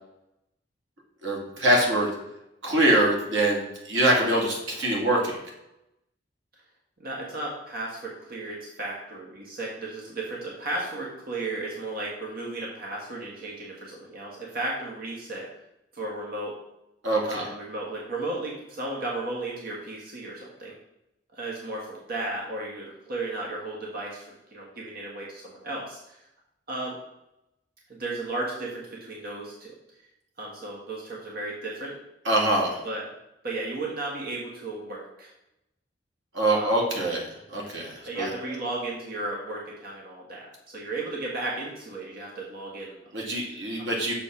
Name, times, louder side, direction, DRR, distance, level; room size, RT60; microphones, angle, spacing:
voice 1, 1.2-2.1 2.6-5.4 17.0-17.4 32.3-32.8 36.3-38.3 43.1-44.1, right 1 dB, 85° right, -2 dB, 2.1 m, -24 dB
voice 2, 7.0-15.5 15.9-16.5 17.3-20.7 21.3-26.3 26.7-27.0 27.9-29.7 30.4-31.9 32.8-33.0 33.4-35.3 36.5-36.8 37.9-43.0 43.3-43.5 43.8-43.9, right 2 dB, 55° right, -3 dB, 1.5 m, -34 dB
6.7 x 4.1 x 5.7 m, 0.85 s
head